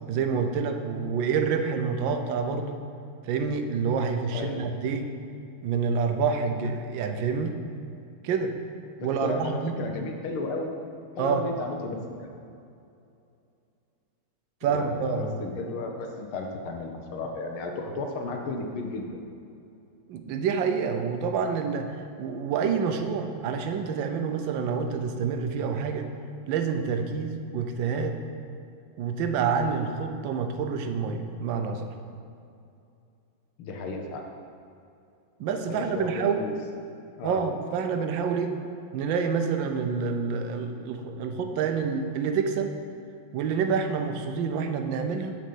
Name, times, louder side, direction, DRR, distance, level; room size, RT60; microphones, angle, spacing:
voice 1, 0.1-2.8 3.3-5.0 5.6-7.6 8.2-8.5 9.0-9.8 11.2-11.5 14.6-15.4 20.1-26.1 26.5-28.2 29.0-31.9 35.4-36.4 37.2-38.5 38.9-42.7 43.3-45.3, right 5 dB, 70° right, 6 dB, 1.4 m, -27 dB
voice 2, 4.3-4.6 9.0-10.7 11.2-12.3 14.6-19.2 33.6-34.3 35.7-36.6 37.2-37.4, left 3 dB, 85° left, 3 dB, 1.8 m, -34 dB
7.5 x 5.2 x 6.9 m, 2.6 s
omnidirectional pair, 2.3 m